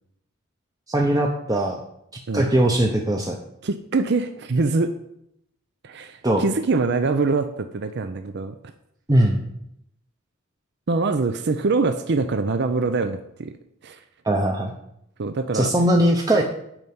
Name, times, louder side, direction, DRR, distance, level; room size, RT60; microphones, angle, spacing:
voice 1, 0.9-1.8 2.3-3.3 6.2-6.4 9.1-9.4 14.2-14.7 15.5-16.4, right 1 dB, 15° right, 1 dB, 0.8 m, -20 dB
voice 2, 3.6-4.9 5.8-8.6 10.9-13.5 13.8-14.0 15.2-15.7, right 3 dB, 55° right, 9 dB, 0.5 m, -24 dB
9.0 x 5.5 x 7.7 m, 0.77 s
head